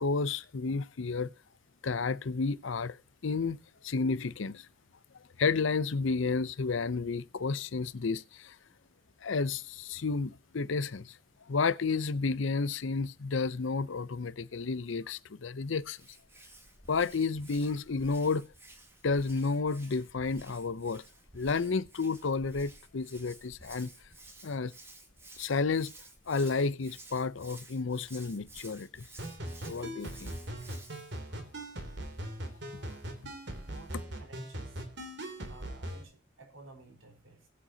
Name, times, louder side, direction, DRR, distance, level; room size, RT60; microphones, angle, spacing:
voice 1, 0.0-1.3 1.8-3.6 3.8-4.7 5.4-8.6 9.2-11.2 11.5-16.0 16.9-18.5 19.0-21.0 21.3-23.9 24.4-24.7 25.4-25.9 26.3-29.1 29.7-30.4 32.7-32.9, left 4 dB, 75° left, 0.6 m, -31 dB
Hands, 15.8-31.2, right 2 dB, 10° right, 1.7 m, -53 dB
sound 1, 29.2-36.0, right 1 dB, 60° right, 2.9 m, -40 dB
voice 2, 33.6-34.8 35.5-37.5, right 2 dB, 85° right, 4.2 m, -54 dB
20.5 x 7.7 x 2.8 m
head